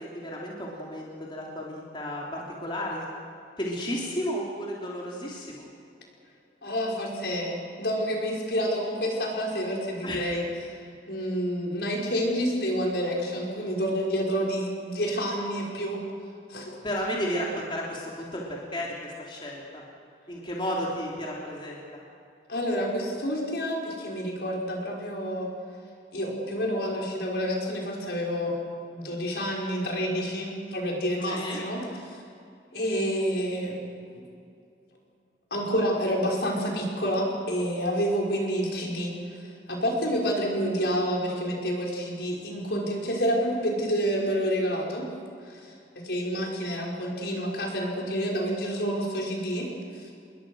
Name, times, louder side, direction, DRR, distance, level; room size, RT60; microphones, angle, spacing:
voice 1, 0.0-3.1 3.6-5.7 10.0-10.3 16.8-19.8 20.3-21.8 31.3-31.6, equal, 30° left, -3 dB, 3.5 m, -33 dB
voice 2, 6.6-10.4 11.1-16.0 16.5-16.7 22.5-25.5 26.1-28.5 28.9-32.2 32.7-33.8 35.5-39.4 39.7-45.1 45.5-45.6 46.0-49.7, equal, 70° left, -1 dB, 5.6 m, -28 dB
28.0 x 21.5 x 6.4 m, 2.5 s
head